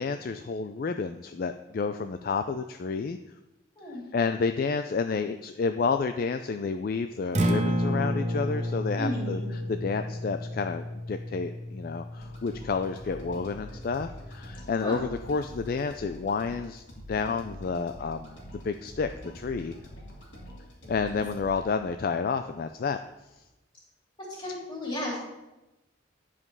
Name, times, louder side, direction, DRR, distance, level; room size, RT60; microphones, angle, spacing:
voice 1, 0.0-3.2 4.1-18.4 18.6-19.1 19.3-19.7 20.9-23.0, left 5 dB, 50° left, 8 dB, 0.3 m, -30 dB
Acoustic guitar, 7.3-15.4, equal, 35° right, 0.8 m, -32 dB
voice 2, 9.0-9.5 14.8-15.0 24.2-25.2, equal, 25° left, -5 dB, 3.1 m, -34 dB
sound 1, 12.2-21.6, equal, 70° left, 2.3 m, -45 dB
9.8 x 5.1 x 5.4 m, 0.98 s
head